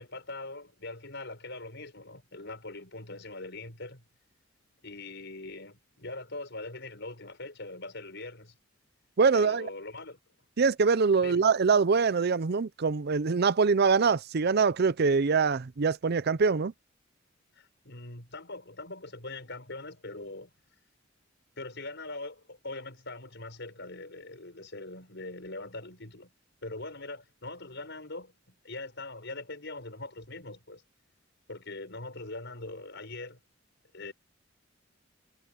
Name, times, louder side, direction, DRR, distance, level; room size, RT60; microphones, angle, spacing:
voice 1, 0.0-4.0 4.8-8.6 9.3-10.2 11.2-11.4 17.5-20.5 21.6-26.3 26.6-30.8 31.5-33.4 33.9-34.1, left 2 dB, 60° left, 6.4 m, -42 dB
voice 2, 9.2-9.7 10.6-16.7, right 5 dB, 55° right, 0.6 m, -24 dB
head